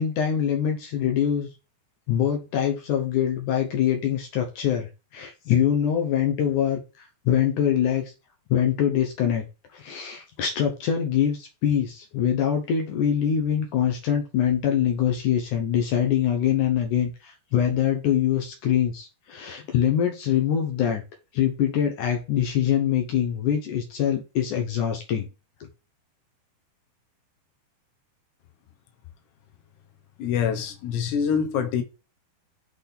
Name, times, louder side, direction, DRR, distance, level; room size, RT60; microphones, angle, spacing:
voice 1, 0.0-1.5 2.1-8.1 8.5-9.5 9.7-21.0 21.3-25.3 25.6-25.7, left 9 dB, 70° left, 2.0 m, -24 dB
voice 2, 30.2-31.8, left 7 dB, 85° left, 3.2 m, -25 dB
8.1 x 4.1 x 3.6 m
omnidirectional pair, 4.7 m